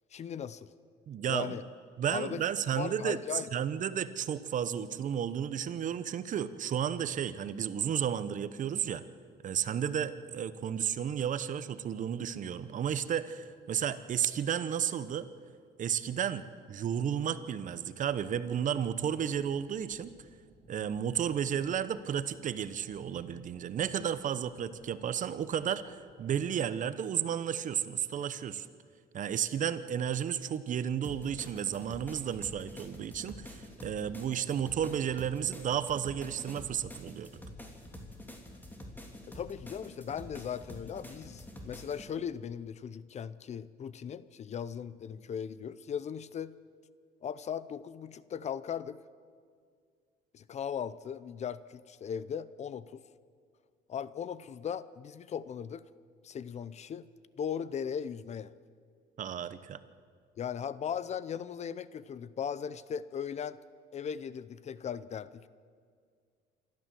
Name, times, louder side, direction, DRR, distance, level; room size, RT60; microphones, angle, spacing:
voice 1, 0.1-0.7 1.3-1.6 2.1-2.4 2.8-3.5 39.3-46.6 47.2-49.0 50.3-53.0 53.9-55.8 56.2-57.1 57.4-58.5 60.4-63.6 63.9-65.5, left 8 dB, 40° left, 17 dB, 0.6 m, -38 dB
voice 2, 1.1-1.6 2.0-3.2 3.5-9.0 9.4-15.3 15.8-20.1 20.7-28.7 29.1-37.3 59.2-59.8, right 9 dB, 50° right, 14 dB, 1.0 m, -33 dB
sound 1, 18.0-26.4, right 1 dB, 15° right, 6.3 m, -62 dB
sound 2, 31.0-42.1, left 1 dB, 10° left, 3.1 m, -47 dB
27.0 x 13.0 x 7.6 m, 2.1 s
cardioid pair, 110°, 17 cm